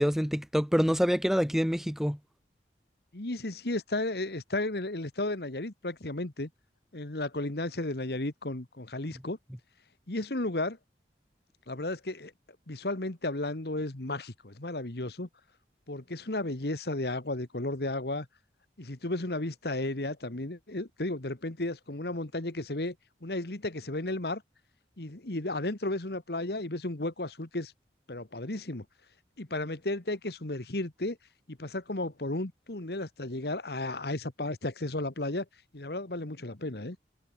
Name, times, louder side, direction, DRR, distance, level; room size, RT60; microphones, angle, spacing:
voice 1, 0.0-2.2, equal, ahead, 1.4 m, -26 dB
voice 2, 3.1-6.5 6.9-9.4 10.1-10.8 11.7-12.3 12.7-15.3 15.9-18.3 18.8-22.9 23.2-24.4 25.0-27.7 28.1-28.8 29.4-31.2 31.5-35.4 35.7-37.0, left 2 dB, 60° left, 1.7 m, -33 dB
head